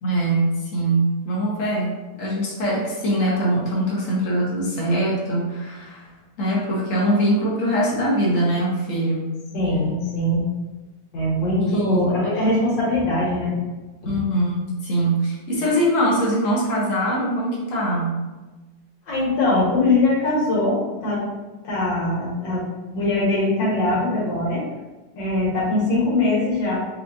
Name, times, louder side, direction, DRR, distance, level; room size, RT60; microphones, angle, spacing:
voice 1, 0.0-1.9 2.2-6.1 6.4-9.3 11.6-12.1 12.4-12.5 14.0-18.1, right 1 dB, 50° left, -4 dB, 1.2 m, -22 dB
voice 2, 9.5-10.4 11.1-13.6 19.1-20.8 21.0-21.3 21.6-22.6 22.9-24.6 25.2-26.8, left 2 dB, 85° left, -5 dB, 2.0 m, -21 dB
4.6 x 2.6 x 2.6 m, 1.2 s
omnidirectional pair, 2.0 m